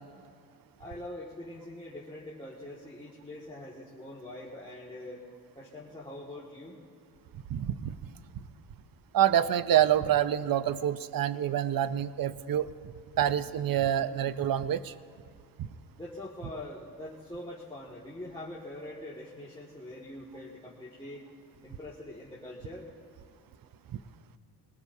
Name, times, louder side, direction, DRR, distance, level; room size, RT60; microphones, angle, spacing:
voice 1, 0.8-5.2 5.6-6.7 16.0-21.2 21.6-22.9, left 1 dB, 15° left, -7 dB, 2.0 m, -43 dB
voice 2, 7.5-7.9 9.1-12.7 13.2-14.9 15.6-15.7, right 10 dB, 55° right, 14 dB, 0.7 m, -27 dB
23.0 x 20.5 x 2.7 m, 2.4 s
cardioid pair, 95°, 41 cm